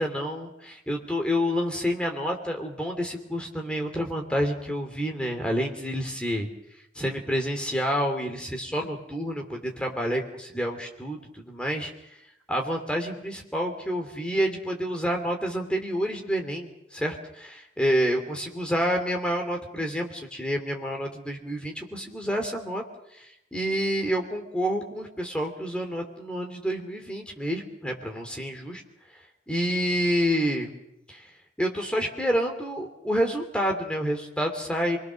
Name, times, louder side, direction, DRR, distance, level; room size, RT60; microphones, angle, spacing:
voice 1, 0.0-6.5 6.9-11.9 12.5-22.8 23.2-28.8 29.5-30.7 31.1-31.3 31.6-35.0, equal, 5° left, 2 dB, 2.8 m, -28 dB
29.0 x 20.5 x 6.4 m, 0.86 s
head